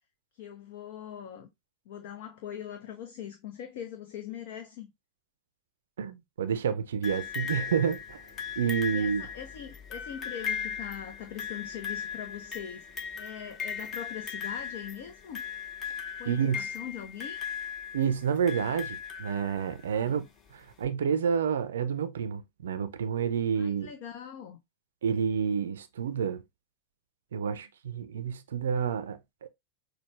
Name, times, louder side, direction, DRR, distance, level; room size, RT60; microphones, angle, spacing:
voice 1, 0.3-1.5 1.9-4.9 8.9-15.4 16.2-17.4 19.9-20.3 23.6-24.6, left 9 dB, 50° left, 0.7 m, -42 dB
voice 2, 6.0-8.2 8.6-9.2 16.3-16.7 17.9-20.2 20.5-23.9 25.0-26.4 27.3-29.5, right 7 dB, 65° right, 0.5 m, -29 dB
sound 1, 7.0-19.9 20.8-20.9, left 7 dB, 30° left, 1.0 m, -38 dB
6.3 x 2.2 x 3.1 m
figure-of-eight pair, 90°, 0 cm